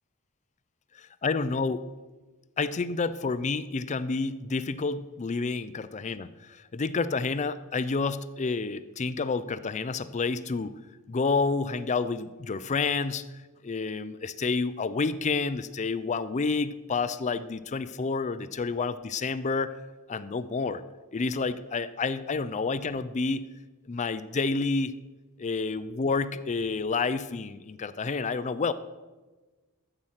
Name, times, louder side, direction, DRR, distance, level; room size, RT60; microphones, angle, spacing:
voice 1, 0.9-1.9 2.6-10.7 11.1-13.3 13.6-19.7 20.1-20.8 21.1-23.4 23.9-24.9 25.4-28.7, left 4 dB, 30° left, 14 dB, 0.4 m, -29 dB
13.5 x 7.8 x 5.8 m, 1.2 s
head